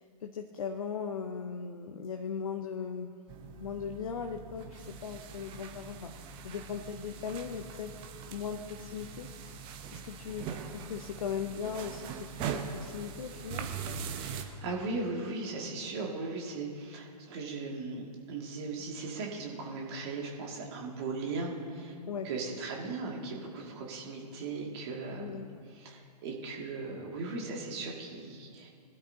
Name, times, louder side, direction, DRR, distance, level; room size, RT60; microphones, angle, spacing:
voice 1, 0.0-3.1 3.6-7.9 8.3-9.6 9.9-13.7 22.1-22.3 25.2-25.5, left 6 dB, 55° left, 5 dB, 0.9 m, -38 dB
sound 1, 3.3-14.4, right 6 dB, 25° right, 0.9 m, -42 dB
voice 2, 14.2-21.9 22.2-25.5 25.7-28.7, right 3 dB, 40° right, -1 dB, 2.4 m, -38 dB
21.0 x 12.5 x 2.8 m, 2.2 s
figure-of-eight pair, 120°, 21 cm